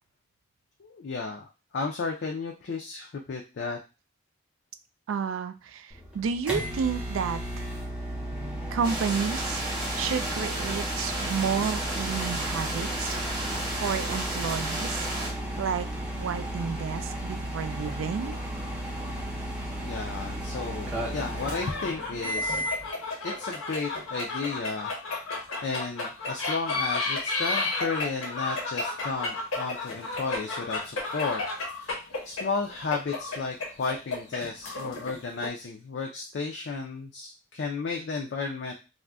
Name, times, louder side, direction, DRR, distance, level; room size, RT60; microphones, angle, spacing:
voice 1, 0.8-3.8 19.8-22.6 23.2-24.9 25.3-31.4 31.7-38.7, left 4 dB, 55° left, 1 dB, 0.4 m, -33 dB
voice 2, 5.1-7.7 8.7-9.6 9.9-13.1 13.8-15.1 15.6-15.9 16.2-18.4, right 6 dB, 75° right, 10 dB, 0.3 m, -31 dB
sound 1, 5.9-22.9, right 1 dB, 5° right, 0.5 m, -34 dB
sound 2, 8.8-15.3, right 1 dB, 25° right, 0.9 m, -33 dB
sound 3, 17.7-19.2 19.5-19.6 21.2-35.5, left 3 dB, 85° left, 0.9 m, -33 dB
2.4 x 2.1 x 3.4 m, 0.29 s
head